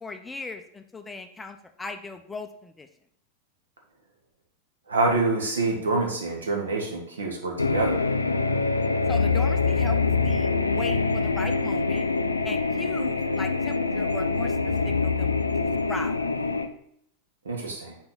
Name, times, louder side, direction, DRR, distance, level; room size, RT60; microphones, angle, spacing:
voice 1, 0.0-2.9 9.1-10.0 10.2-10.5 10.7-12.1 12.4-15.3 15.9-16.2, left 3 dB, 10° left, 7 dB, 0.5 m, -38 dB
voice 2, 4.9-8.0 17.4-18.0, right 3 dB, 70° right, 1 dB, 1.3 m, -26 dB
sound 1, 7.6-16.7, left 4 dB, 80° left, 0.4 m, -25 dB
5.6 x 4.3 x 3.9 m, 0.70 s
figure-of-eight pair, 90°, 0 cm